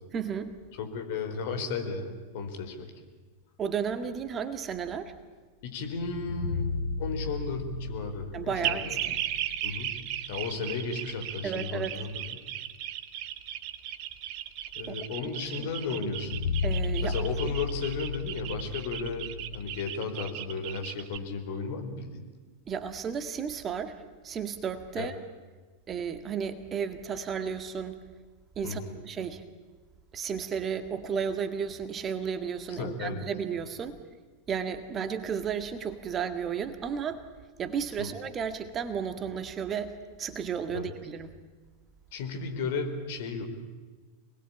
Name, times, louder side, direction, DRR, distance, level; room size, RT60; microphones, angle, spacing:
voice 1, 0.1-0.6 3.6-5.1 8.3-9.2 11.4-12.0 14.9-15.0 15.5-15.7 16.6-17.3 22.7-24.0 24.2-25.2 25.9-28.0 28.6-29.4 30.1-34.0 34.5-37.2 37.6-41.4, right 7 dB, 25° right, 9 dB, 1.8 m, -33 dB
voice 2, 0.8-2.9 5.6-6.7 7.0-9.0 9.6-9.9 10.3-12.3 14.7-16.4 17.0-22.2 25.0-25.1 28.6-29.0 32.7-33.2 38.0-38.1 40.7-40.9 42.1-43.4, left 4 dB, 50° left, 5 dB, 4.4 m, -34 dB
sound 1, 5.8-10.5 10.8-10.9 15.9-19.8, left 4 dB, 70° left, 4.1 m, -34 dB
sound 2, 8.6-21.2, right 12 dB, 40° right, 1.6 m, -36 dB
27.0 x 20.5 x 8.8 m, 1.4 s
figure-of-eight pair, 90°, 0 cm